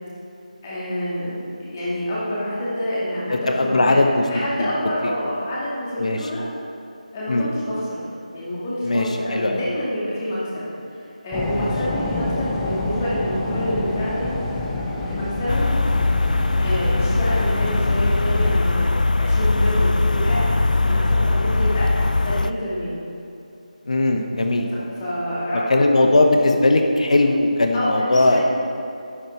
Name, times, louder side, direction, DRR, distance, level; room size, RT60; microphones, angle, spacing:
voice 1, 0.6-4.0 4.3-6.5 7.1-8.0 8.3-10.7 11.2-14.2 15.1-15.7 16.6-18.9 19.2-21.9 22.2-23.0 24.7-26.1 27.7-28.4, equal, 20° left, -8 dB, 2.3 m, -27 dB
voice 2, 3.3-4.7 6.0-6.2 7.3-7.5 8.8-9.1 9.3-9.6 11.5-11.7 23.9-24.7 25.7-28.4, left 2 dB, 55° left, 4 dB, 1.1 m, -19 dB
sound 1, 11.3-18.5, left 2 dB, 5° left, 0.4 m, -28 dB
sound 2, 15.5-22.5, left 3 dB, 80° left, 0.4 m, -20 dB
9.9 x 8.3 x 4.6 m, 2.7 s
figure-of-eight pair, 165°, 4 cm